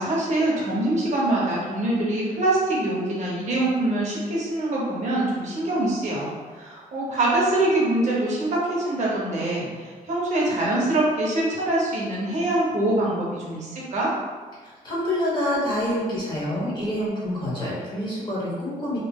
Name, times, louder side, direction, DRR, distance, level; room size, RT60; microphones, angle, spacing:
voice 1, 0.0-14.1, right 1 dB, 50° right, -5 dB, 0.7 m, -24 dB
voice 2, 14.6-19.0, left 1 dB, 30° left, -7 dB, 0.9 m, -27 dB
2.7 x 2.7 x 2.2 m, 1.4 s
wide cardioid pair, 170°, 15 cm